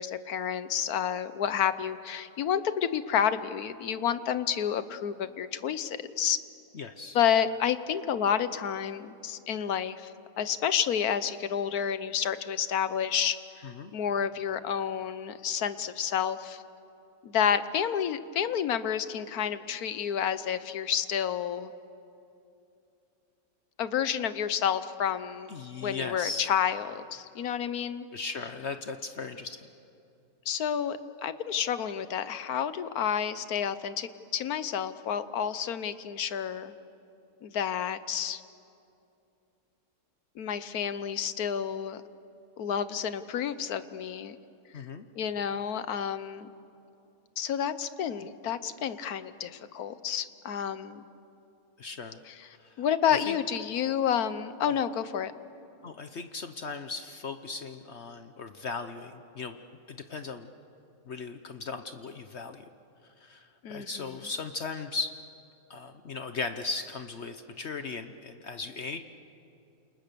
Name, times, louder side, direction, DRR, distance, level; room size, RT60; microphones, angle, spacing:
voice 1, 0.0-6.4 7.1-10.1 10.4-16.6 17.2-21.7 23.8-25.5 25.8-28.1 30.5-36.7 37.4-38.4 40.4-42.0 42.6-44.4 44.7-44.9 45.2-46.5 47.4-51.1 52.3-52.5 52.8-55.3 63.6-64.2, left 8 dB, 85° left, 13 dB, 1.4 m, -30 dB
voice 2, 6.7-7.2 13.6-13.9 25.5-26.5 28.1-29.7 44.7-45.0 51.8-52.2 52.6-52.8 53.1-53.4 55.8-59.6 59.9-60.5 61.1-62.7 63.2-65.1 65.7-69.0, left 4 dB, 55° left, 8 dB, 1.1 m, -37 dB
29.0 x 28.0 x 6.9 m, 2.7 s
omnidirectional pair, 1.5 m